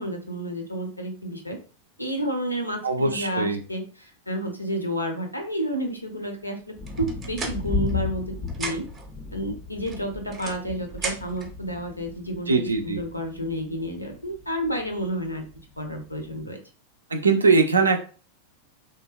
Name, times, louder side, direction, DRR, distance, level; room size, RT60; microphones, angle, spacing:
voice 1, 0.0-1.6 2.0-8.9 9.3-15.5 15.8-16.6, equal, 85° left, 4 dB, 0.5 m, -31 dB
voice 2, 2.8-3.6 12.5-13.0 17.1-18.0, right 4 dB, 75° right, 5 dB, 0.4 m, -21 dB
sound 1, 6.8-16.4, left 4 dB, 20° left, 0.4 m, -36 dB
sound 2, 6.9-8.2 8.5-9.1 9.9-11.5, right 3 dB, 25° right, 0.6 m, -35 dB
2.8 x 2.1 x 2.3 m, 0.37 s
figure-of-eight pair, 90°, 0 cm